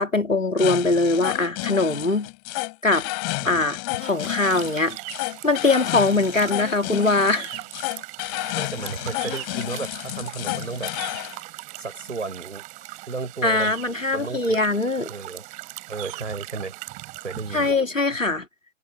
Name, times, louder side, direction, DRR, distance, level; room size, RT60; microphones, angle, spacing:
voice 1, 0.0-2.3 2.8-3.1 3.4-5.0 5.4-7.5 13.4-15.1 17.5-18.4, left 3 dB, 90° left, 2.4 m, -22 dB
sound 1, 0.6-11.4, left 40 dB or more, 20° left, 3.6 m, -31 dB
sound 2, 3.9-17.7, right 23 dB, 20° right, 5.3 m, -40 dB
voice 2, 8.5-10.9 11.8-12.6 13.1-13.8 14.1-14.6 15.1-15.5 15.9-16.7 17.2-17.8, right 4 dB, 70° right, 5.2 m, -33 dB
figure-of-eight pair, 135°, 38 cm